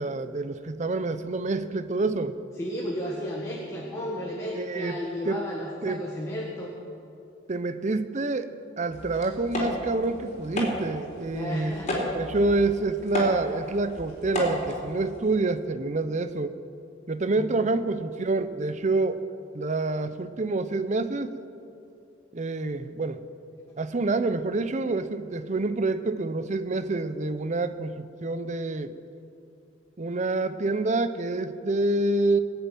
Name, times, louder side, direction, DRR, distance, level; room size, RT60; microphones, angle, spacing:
voice 1, 0.0-2.4 4.5-5.0 5.3-5.4 5.8-6.0 7.5-8.5 8.8-11.8 12.1-16.5 17.1-19.2 19.5-21.4 22.3-23.2 23.8-28.9 30.0-32.4, right 2 dB, 40° right, 11 dB, 0.6 m, -27 dB
voice 2, 2.6-6.7 11.3-12.1 17.4-17.6, equal, 15° left, -3 dB, 1.7 m, -33 dB
sound 1, 8.9-15.4, left 1 dB, 35° left, 3.6 m, -33 dB
21.0 x 7.0 x 9.1 m, 2.5 s
head